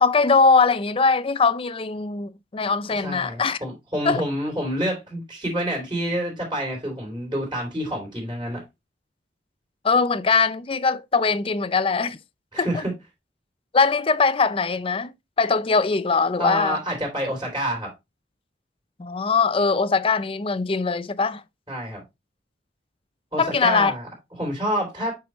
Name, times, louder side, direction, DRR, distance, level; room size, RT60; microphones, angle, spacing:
voice 1, 0.0-3.6 4.0-4.2 9.8-12.2 12.6-12.8 13.7-15.1 15.4-16.8 19.0-21.4 23.4-23.9, left 4 dB, 30° left, 0.4 m, -21 dB
voice 2, 3.0-8.6 12.5-12.9 16.4-17.9 21.7-22.0 23.3-24.1 24.4-25.2, equal, 20° right, 2.9 m, -28 dB
7.9 x 4.8 x 3.0 m
head